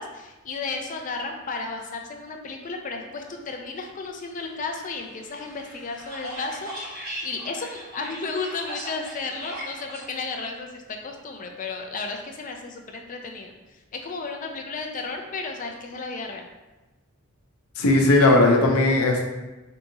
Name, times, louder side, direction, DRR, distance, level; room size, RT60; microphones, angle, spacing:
voice 1, 0.0-13.5 14.0-16.5, left 3 dB, 35° left, 3 dB, 0.4 m, -33 dB
sound 1, 4.7-10.0, equal, 45° right, 1.1 m, -39 dB
voice 2, 17.8-19.2, left 2 dB, 85° left, 1 dB, 0.7 m, -17 dB
4.6 x 2.7 x 2.7 m, 1.1 s
head